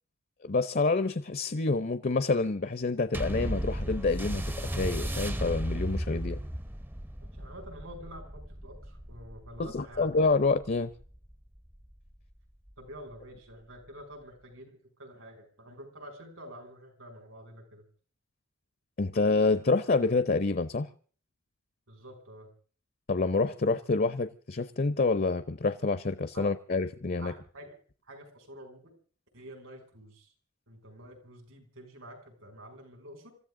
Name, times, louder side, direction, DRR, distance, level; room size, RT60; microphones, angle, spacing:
voice 1, 0.4-6.4 9.6-10.9 19.0-20.9 23.1-27.3, left 3 dB, 45° left, 0.7 m, -27 dB
sound 1, 3.1-11.9 12.7-12.8, equal, 10° right, 0.6 m, -35 dB
voice 2, 7.4-10.1 12.8-17.8 21.9-22.5 26.3-26.5 27.2-27.8 28.1-28.9 29.3-30.3 30.7-33.3, equal, 75° right, 5.6 m, -48 dB
26.5 x 14.0 x 3.7 m
head